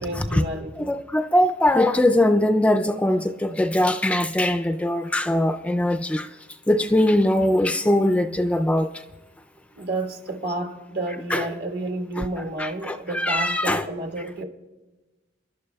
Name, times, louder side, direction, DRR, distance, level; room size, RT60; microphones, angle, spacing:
voice 1, 0.0-0.9 9.8-14.4, right 2 dB, 65° right, 1.6 m, -30 dB
voice 2, 0.8-6.3 6.7-8.9 11.3-11.4 12.2-12.3 12.6-13.8, left 1 dB, 5° left, 0.3 m, -21 dB
27.0 x 11.5 x 2.3 m
head